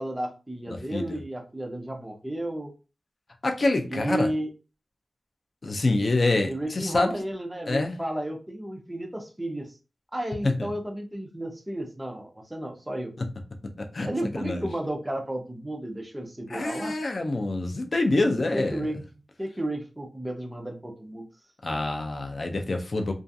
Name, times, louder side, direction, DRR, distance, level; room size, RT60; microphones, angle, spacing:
voice 1, 0.0-2.7 3.9-4.5 6.5-9.7 10.1-13.1 14.0-17.0 18.5-19.0 19.4-21.3, right 1 dB, 10° right, 0.5 m, -33 dB
voice 2, 0.7-1.2 3.4-4.3 5.6-7.1 7.6-7.9 10.4-10.7 13.2-13.3 13.9-14.1 14.4-14.7 16.5-18.9 21.6-23.1, left 2 dB, 50° left, 0.5 m, -26 dB
2.4 x 2.3 x 2.6 m
wide cardioid pair, 120°, 0 cm